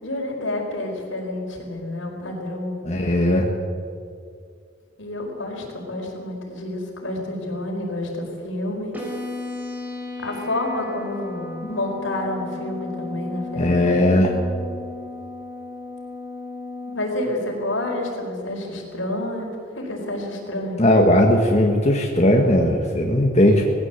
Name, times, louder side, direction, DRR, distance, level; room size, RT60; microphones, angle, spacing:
voice 1, 0.0-2.8 5.0-9.0 10.2-14.0 16.9-20.9, left 1 dB, 75° left, 0 dB, 5.1 m, -29 dB
voice 2, 2.8-3.5 13.6-14.3 20.8-23.6, left 1 dB, 35° left, 1 dB, 1.7 m, -18 dB
sound 1, 8.9-16.9, left 2 dB, 10° right, 4.4 m, -34 dB
19.5 x 16.0 x 8.4 m, 2.3 s
head